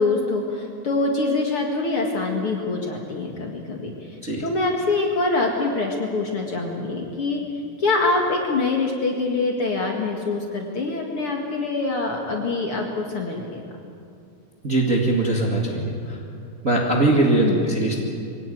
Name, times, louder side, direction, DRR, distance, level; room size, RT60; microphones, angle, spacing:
voice 1, 0.0-7.4 7.8-13.6 17.4-17.7, left 3 dB, 45° left, 0 dB, 2.3 m, -24 dB
voice 2, 14.6-16.2 16.6-18.0, right 2 dB, 30° right, -2 dB, 1.8 m, -21 dB
23.5 x 17.5 x 9.2 m, 2.5 s
omnidirectional pair, 4.2 m